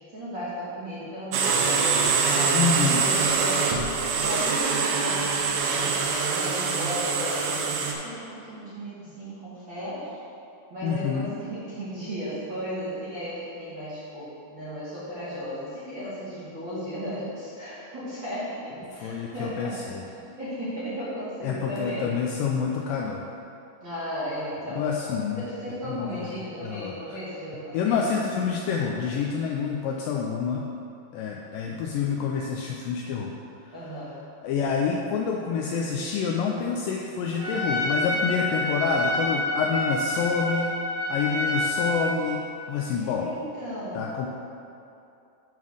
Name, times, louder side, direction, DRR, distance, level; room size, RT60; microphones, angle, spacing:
voice 1, 0.1-3.9 4.1-10.2 10.7-20.1 20.4-22.1 23.8-24.8 25.3-28.1 33.7-34.2 42.9-44.1, equal, 45° right, -12 dB, 1.8 m, -35 dB
sound 1, 1.3-7.9, right 5 dB, 85° right, 1.7 m, -24 dB
voice 2, 2.5-3.1 10.8-11.4 19.0-20.0 21.4-23.2 24.8-25.4 25.8-26.1 26.6-26.9 27.7-30.7 31.1-33.3 33.6-33.7 34.4-40.8 41.1-42.4 42.7-43.3 44.0-44.3, left 6 dB, 85° left, -1 dB, 1.9 m, -27 dB
Trumpet, 37.4-42.3, left 1 dB, 60° right, 3.4 m, -28 dB
9.2 x 3.7 x 6.3 m, 2.7 s
omnidirectional pair, 4.5 m